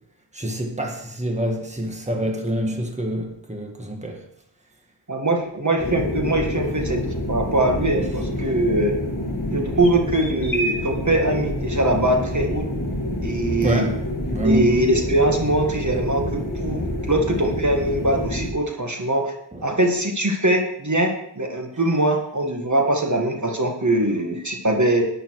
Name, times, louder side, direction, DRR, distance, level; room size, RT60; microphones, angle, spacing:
voice 1, 0.3-4.2 13.6-14.0 14.3-14.7 19.5-19.6, right 1 dB, 15° right, 1.8 m, -26 dB
voice 2, 5.1-7.0 7.3-8.9 9.5-12.6 13.2-13.9 14.4-19.3 19.6-25.0, right 1 dB, 40° right, 1.8 m, -22 dB
sound 1, 5.8-18.5, left 1 dB, 40° left, 2.1 m, -27 dB
11.0 x 9.9 x 4.7 m
wide cardioid pair, 75°, 46 cm